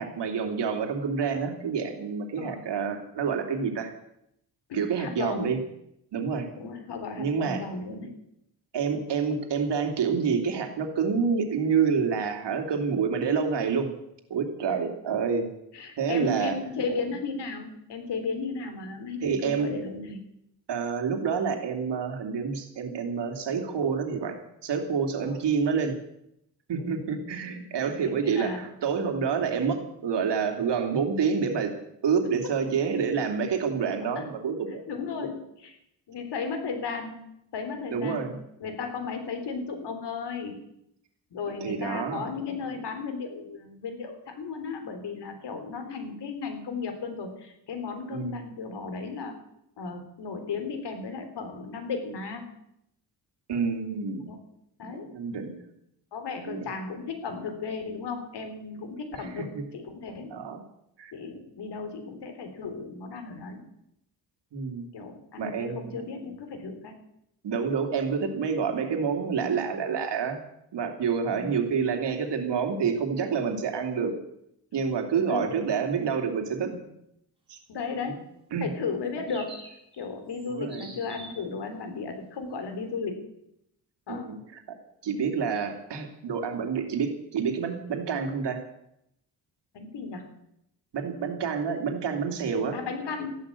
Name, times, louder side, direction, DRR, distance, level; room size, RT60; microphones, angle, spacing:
voice 1, 0.0-3.9 4.7-5.6 6.1-6.5 7.2-7.6 8.7-13.9 14.3-15.5 16.0-16.5 19.2-19.7 20.7-25.9 26.7-31.7 32.0-34.9 37.9-38.3 41.6-42.3 48.1-48.4 53.5-54.2 54.9-55.5 56.4-56.6 59.2-59.6 60.3-60.6 61.0-61.1 64.5-64.9 65.4-66.0 67.4-70.4 70.7-74.1 74.7-76.7 77.5-77.6 78.5-78.7 80.5-80.9 84.2-84.6 85.0-88.6 90.9-92.8, right 6 dB, 80° right, 5 dB, 2.9 m, -28 dB
voice 2, 2.4-2.7 4.7-5.5 6.6-8.1 15.7-20.2 25.2-25.4 26.7-27.0 28.1-28.6 32.4-32.5 34.2-34.3 34.9-35.8 36.1-37.2 37.5-40.6 41.3-49.3 49.8-52.5 54.3-54.4 54.8-55.1 56.1-60.3 61.1-63.6 64.9-66.9 71.3-71.6 75.2-75.6 77.7-78.2 78.6-79.6 79.9-83.2 84.1-84.3 89.7-90.2 92.7-93.4, left 4 dB, 75° left, 6 dB, 3.6 m, -35 dB
sound 1, 79.3-80.0 80.3-81.5, right 2 dB, 10° right, 7.5 m, -46 dB
14.5 x 11.5 x 8.4 m, 0.79 s
cardioid pair, 105°, 41 cm